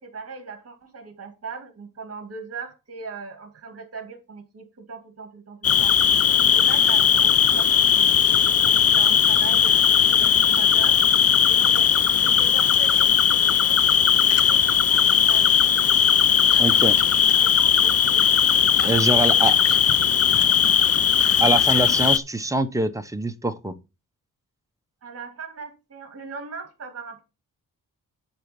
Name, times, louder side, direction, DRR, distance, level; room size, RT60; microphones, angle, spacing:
voice 1, 0.0-5.9 6.4-8.1 8.6-11.0 11.4-15.8 16.4-17.2 17.5-19.4 20.0-20.6 25.0-27.2, right 4 dB, 45° right, 2.5 m, -40 dB
Cricket, 5.6-22.2, left 8 dB, 45° left, 0.5 m, -18 dB
voice 2, 16.6-17.0 18.8-19.5 21.4-23.7, right 2 dB, 10° right, 0.9 m, -24 dB
10.0 x 3.9 x 7.0 m
wide cardioid pair, 155°, 34 cm